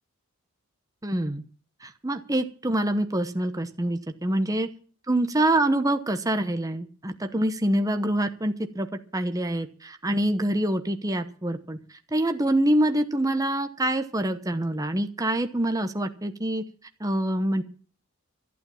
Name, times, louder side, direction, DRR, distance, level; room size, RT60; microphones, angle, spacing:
voice 1, 1.0-1.4 1.8-4.7 5.1-8.9 9.1-16.6 17.0-17.6, right 1 dB, 15° right, 7 dB, 0.9 m, -26 dB
12.0 x 11.0 x 7.1 m, 0.43 s
head